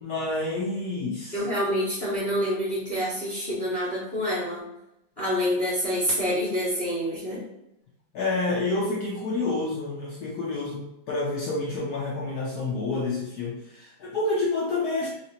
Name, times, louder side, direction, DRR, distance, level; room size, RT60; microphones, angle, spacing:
voice 1, 0.0-1.4 8.1-15.1, left 2 dB, 65° left, -4 dB, 1.0 m, -28 dB
voice 2, 1.3-4.6 5.2-7.4, equal, 30° left, -10 dB, 1.1 m, -27 dB
3.2 x 2.8 x 2.8 m, 0.87 s
omnidirectional pair, 2.2 m